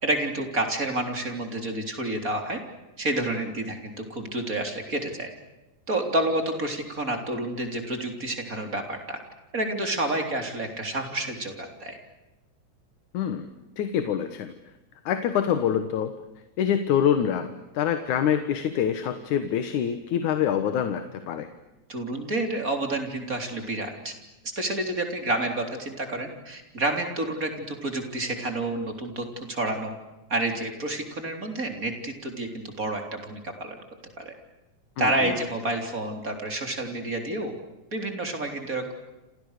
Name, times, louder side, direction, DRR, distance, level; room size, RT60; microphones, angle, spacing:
voice 1, 0.0-2.6 3.0-5.3 5.9-9.2 9.5-12.0 21.9-24.1 24.6-30.0 30.3-33.8 34.2-34.3 35.0-37.5 37.9-38.9, right 2 dB, 25° right, 4 dB, 3.9 m, -29 dB
voice 2, 13.1-13.5 13.8-14.5 15.1-16.1 16.6-21.5 35.0-35.4, left 9 dB, 85° left, 9 dB, 2.8 m, -25 dB
30.0 x 27.5 x 6.7 m, 1.0 s
omnidirectional pair, 3.4 m